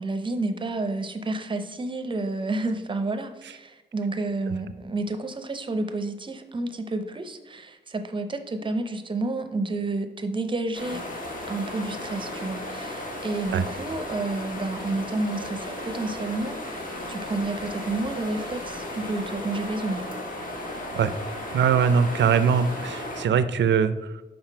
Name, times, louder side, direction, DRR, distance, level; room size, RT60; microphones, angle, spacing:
voice 1, 0.0-11.0 11.5-16.8 17.1-20.0, right 2 dB, 25° right, 8 dB, 0.6 m, -30 dB
sound 1, 10.7-23.2, left 1 dB, 50° left, 1.3 m, -35 dB
voice 2, 21.5-24.2, right 7 dB, 75° right, 12 dB, 0.5 m, -22 dB
5.9 x 5.3 x 4.5 m, 1.1 s
wide cardioid pair, 135°, 19 cm